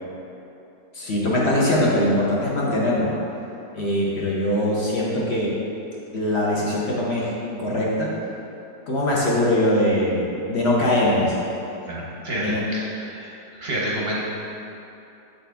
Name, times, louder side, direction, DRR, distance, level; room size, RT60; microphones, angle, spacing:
voice 1, 0.9-3.1 3.7-5.5 6.1-8.1 8.9-11.4 12.4-12.6, left 1 dB, 50° left, -5 dB, 0.9 m, -22 dB
voice 2, 11.9-13.3 13.6-14.2, right 1 dB, 50° right, -5 dB, 0.8 m, -28 dB
7.4 x 4.2 x 3.4 m, 2.8 s
omnidirectional pair, 1.9 m